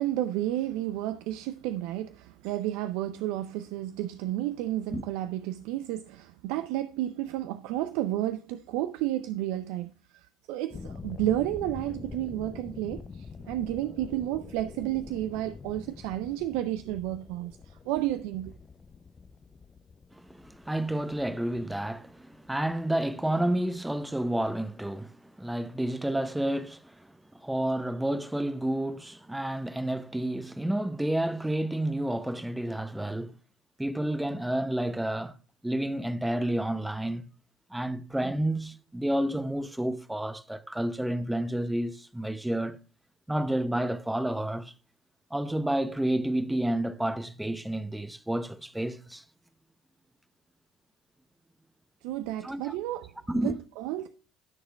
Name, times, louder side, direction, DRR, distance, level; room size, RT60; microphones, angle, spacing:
voice 1, 0.0-18.5 52.0-54.1, right 14 dB, 70° right, 0.5 m, -32 dB
sound 1, 10.7-23.3 23.6-23.9, left 5 dB, 30° left, 0.6 m, -45 dB
voice 2, 20.1-27.1 27.3-33.4 33.8-35.3 35.6-37.3 37.7-42.8 43.3-44.7 45.3-49.2 52.4-52.7 53.3-53.6, right 1 dB, 5° right, 0.8 m, -30 dB
16.0 x 6.4 x 2.3 m
hypercardioid pair, 70°, 0 cm